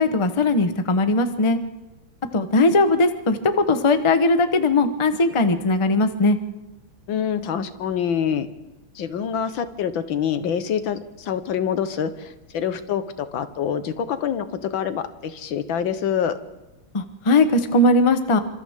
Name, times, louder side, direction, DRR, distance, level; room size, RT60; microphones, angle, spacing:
voice 1, 0.0-1.6 2.3-6.4 16.9-18.4, left 2 dB, 30° left, 9 dB, 0.6 m, -19 dB
voice 2, 7.1-8.5 9.0-16.4, left 8 dB, 75° left, 11 dB, 1.8 m, -26 dB
28.5 x 25.5 x 3.6 m, 1.1 s
omnidirectional pair, 2.2 m